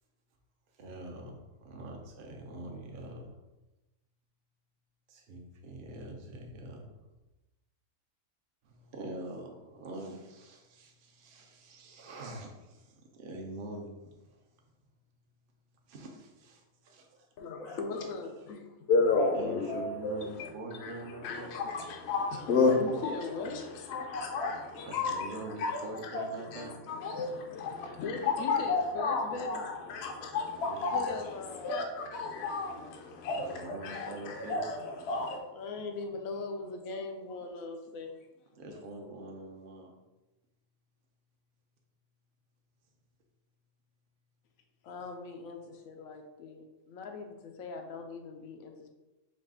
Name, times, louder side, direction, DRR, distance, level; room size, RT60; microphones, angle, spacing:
voice 1, 0.8-3.3 5.1-6.9 8.6-14.0 15.9-17.3 17.7-17.8 19.4-21.6 24.8-26.7 30.6-31.1 33.3-34.6 38.6-39.9, right 2 dB, 50° right, 0 dB, 0.7 m, -44 dB
voice 2, 17.4-18.9 21.5-21.7 22.3-23.9 24.7-25.5 26.4-29.6 30.9-32.5 35.5-38.3 39.0-39.1 44.8-48.9, left 4 dB, 85° left, 4 dB, 1.0 m, -41 dB
voice 3, 18.9-20.5 20.8-20.9 21.2-23.1 23.5-25.8 26.1-26.3 26.5-31.2 31.6-35.4, left 4 dB, 65° left, 2 dB, 0.7 m, -31 dB
4.7 x 2.4 x 3.6 m, 1.0 s
omnidirectional pair, 1.4 m